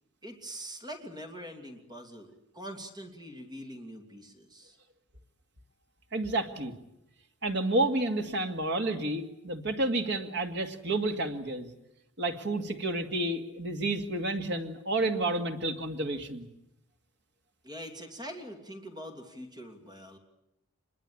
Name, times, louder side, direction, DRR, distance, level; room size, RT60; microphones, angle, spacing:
voice 1, 0.2-4.8 17.6-20.2, equal, 20° right, 4 dB, 2.8 m, -44 dB
voice 2, 6.1-6.7 7.4-11.7 12.2-16.5, right 2 dB, 55° right, 5 dB, 2.2 m, -30 dB
25.0 x 22.0 x 8.7 m, 0.82 s
head